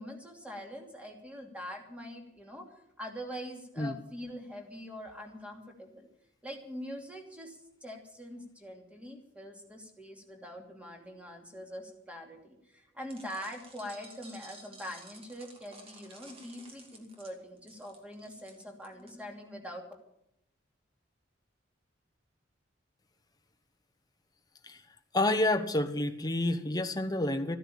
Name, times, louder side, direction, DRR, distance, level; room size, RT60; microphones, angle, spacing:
voice 1, 0.0-2.7 3.0-6.1 6.4-19.8, equal, 5° right, 2 dB, 2.7 m, -44 dB
sound 1, 13.1-19.1, right 2 dB, 30° right, 2.6 m, -53 dB
voice 2, 25.1-27.6, left 1 dB, 20° left, 7 dB, 1.1 m, -29 dB
14.5 x 10.0 x 8.6 m, 0.78 s
head